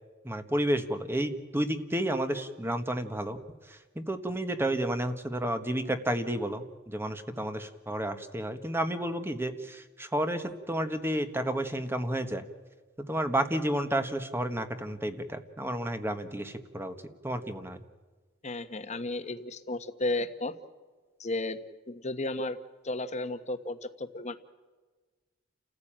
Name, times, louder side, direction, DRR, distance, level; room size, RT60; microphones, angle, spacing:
voice 1, 0.2-3.4 4.0-12.4 13.0-16.9 17.2-17.8, right 1 dB, 10° right, 8 dB, 1.4 m, -31 dB
voice 2, 18.4-20.5 21.2-21.6 21.9-22.6 22.8-24.4, left 2 dB, 35° left, 9 dB, 1.3 m, -33 dB
29.5 x 15.0 x 8.9 m, 1.4 s
head